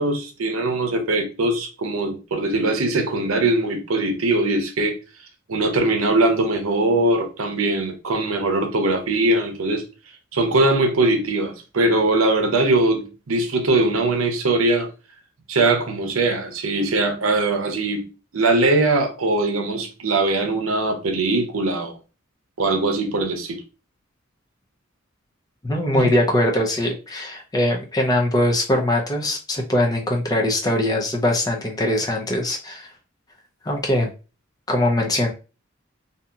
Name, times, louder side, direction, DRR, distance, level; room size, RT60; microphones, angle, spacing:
voice 1, 0.0-5.0 5.5-9.8 10.3-14.9 15.5-18.1 18.3-21.9 22.6-23.6 25.9-26.1, right 2 dB, 85° right, 0.7 m, -21 dB
voice 2, 25.6-32.9 33.6-34.1 34.7-35.3, left 1 dB, 20° left, 0.5 m, -21 dB
2.7 x 2.7 x 2.3 m
head